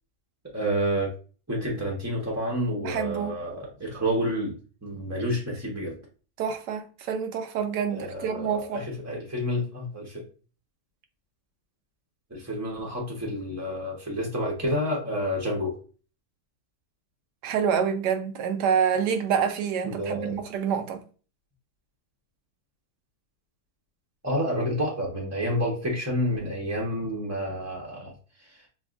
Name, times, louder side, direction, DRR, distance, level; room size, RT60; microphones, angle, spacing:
voice 1, 0.5-1.1 1.5-5.9 7.9-10.3 12.3-15.8 19.9-20.4 24.2-28.1 28.4-28.6, equal, 20° right, 0.5 m, -29 dB
voice 2, 2.8-3.4 6.4-8.8 17.4-21.0, right 7 dB, 85° right, 1.3 m, -27 dB
5.9 x 2.3 x 2.4 m
omnidirectional pair, 1.7 m